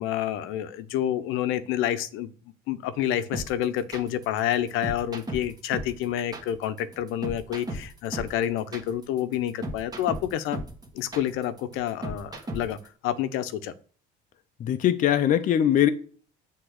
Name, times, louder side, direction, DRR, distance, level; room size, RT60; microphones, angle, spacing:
voice 1, 0.0-2.3 2.7-10.6 10.9-12.8 13.0-13.7, left 11 dB, 75° left, 0.8 m, -28 dB
sound 1, 3.3-12.9, right 1 dB, 20° right, 1.5 m, -35 dB
voice 2, 14.6-15.9, left 10 dB, 40° left, 0.7 m, -21 dB
7.9 x 3.6 x 6.5 m
cardioid pair, 140°, 21 cm